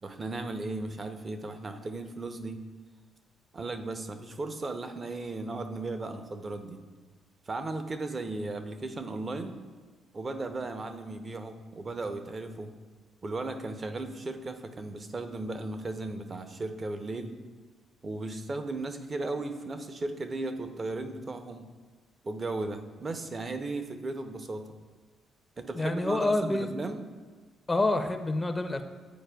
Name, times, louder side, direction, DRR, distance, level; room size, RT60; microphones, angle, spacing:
voice 1, 0.0-2.6 3.5-6.8 7.5-9.6 10.1-12.7 13.2-17.4 18.0-21.7 22.2-24.7 25.6-27.0, right 2 dB, 35° right, 7 dB, 0.6 m, -36 dB
voice 2, 25.8-26.7 27.7-28.8, left 2 dB, 20° left, 7 dB, 0.4 m, -27 dB
10.0 x 4.3 x 2.3 m, 1.4 s
supercardioid pair, 60°, 0 cm